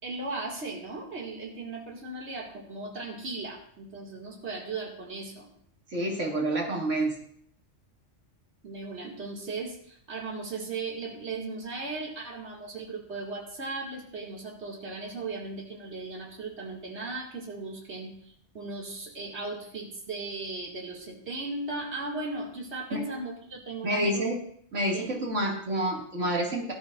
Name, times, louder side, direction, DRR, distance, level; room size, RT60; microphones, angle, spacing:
voice 1, 0.0-5.5 8.6-24.2 24.9-25.1, right 3 dB, 65° right, -2 dB, 2.5 m, -37 dB
voice 2, 5.9-7.1 22.9-23.0 23.8-24.4 24.7-26.7, right 1 dB, 80° right, -2 dB, 2.6 m, -28 dB
19.0 x 12.0 x 2.5 m, 0.63 s
omnidirectional pair, 1.2 m